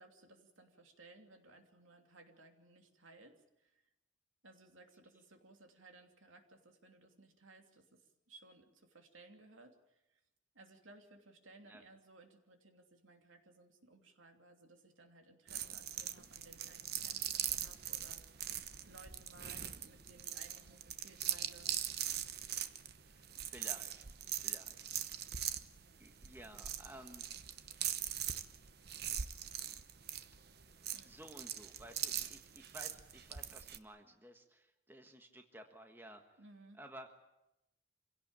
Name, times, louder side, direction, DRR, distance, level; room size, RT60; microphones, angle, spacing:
voice 1, 0.0-3.9 4.4-10.2 10.5-21.7 30.9-31.1 36.4-36.8, right 2 dB, 75° right, 4 dB, 2.9 m, -60 dB
sound 1, 15.5-33.8, right 10 dB, 50° right, 1.0 m, -41 dB
voice 2, 23.0-24.0 24.4-24.9 26.0-27.2 31.0-36.4 36.8-37.1, right 1 dB, 10° right, 5 dB, 1.5 m, -55 dB
26.0 x 17.0 x 9.0 m, 0.93 s
head